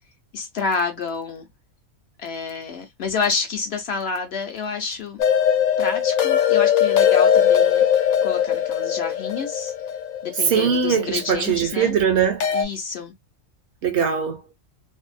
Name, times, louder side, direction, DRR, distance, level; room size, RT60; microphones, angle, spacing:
voice 1, 0.3-1.5 2.2-5.2 5.8-7.9 8.2-9.7 10.2-11.9 12.5-13.1, left 5 dB, 65° left, 0.7 m, -29 dB
sound 1, 5.2-11.3 12.4-12.6, left 9 dB, 85° left, 1.0 m, -20 dB
voice 2, 10.5-12.5 13.8-14.4, right 7 dB, 65° right, 0.8 m, -21 dB
2.6 x 2.0 x 2.3 m
omnidirectional pair, 1.4 m